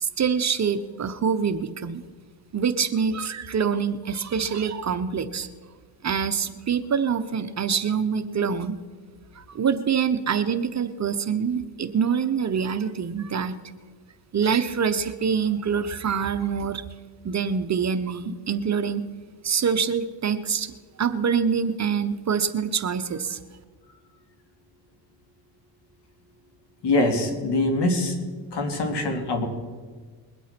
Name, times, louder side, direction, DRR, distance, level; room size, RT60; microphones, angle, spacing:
voice 1, 0.0-2.0 2.5-5.5 6.0-8.8 9.4-13.6 14.3-16.8 17.2-19.0 19.4-20.7 21.0-23.4, right 6 dB, 35° right, 10 dB, 0.9 m, -25 dB
voice 2, 26.8-28.2 28.5-29.5, left 2 dB, 60° left, 5 dB, 3.1 m, -23 dB
21.5 x 8.2 x 5.9 m, 1.5 s
cardioid pair, 95°, 46 cm